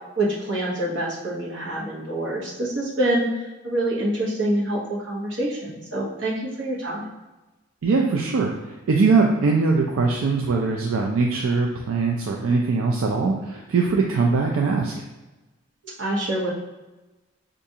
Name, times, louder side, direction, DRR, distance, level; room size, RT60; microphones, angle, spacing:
voice 1, 0.2-7.1 16.0-16.5, right 1 dB, 65° right, -5 dB, 1.0 m, -26 dB
voice 2, 7.8-14.9, right 4 dB, 85° right, 0 dB, 0.4 m, -21 dB
4.6 x 2.5 x 2.7 m, 1.1 s
head